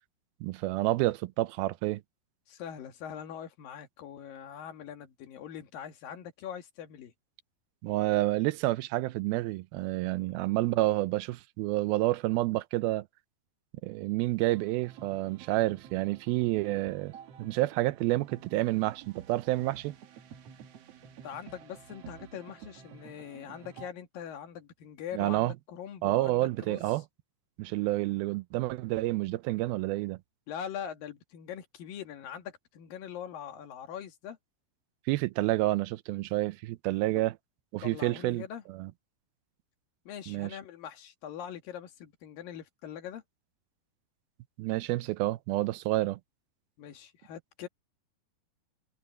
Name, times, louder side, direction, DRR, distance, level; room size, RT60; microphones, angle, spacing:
voice 1, 0.4-2.0 7.8-13.1 13.8-17.1 17.4-19.9 25.1-25.5 26.0-27.0 27.6-30.2 35.1-37.3 37.7-38.4 38.8-38.9 40.3-40.5 44.6-46.2, right 18 dB, 80° right, 2.4 m, -29 dB
voice 2, 2.5-7.1 21.2-26.9 30.5-34.4 37.8-38.6 40.1-43.2 46.8-47.7, left 9 dB, 65° left, 3.6 m, -42 dB
sound 1, 14.5-23.9, right 8 dB, 65° right, 1.6 m, -50 dB
omnidirectional pair, 4.4 m